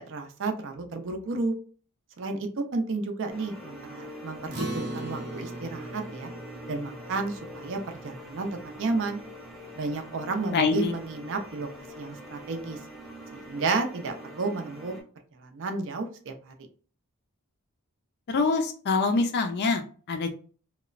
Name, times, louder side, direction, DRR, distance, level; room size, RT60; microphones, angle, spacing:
voice 1, 0.0-1.5 2.2-6.3 6.7-9.2 9.7-11.7 12.0-12.8 13.3-15.0 15.4-16.5, right 3 dB, 55° right, 5 dB, 0.5 m, -32 dB
sound 1, 3.3-15.0, equal, ahead, 0.7 m, -44 dB
Acoustic guitar, 4.5-9.2, right 1 dB, 85° right, 0.8 m, -39 dB
voice 2, 10.5-10.9 18.3-20.3, left 4 dB, 50° left, 5 dB, 0.4 m, -25 dB
2.9 x 2.0 x 2.4 m, 0.41 s
head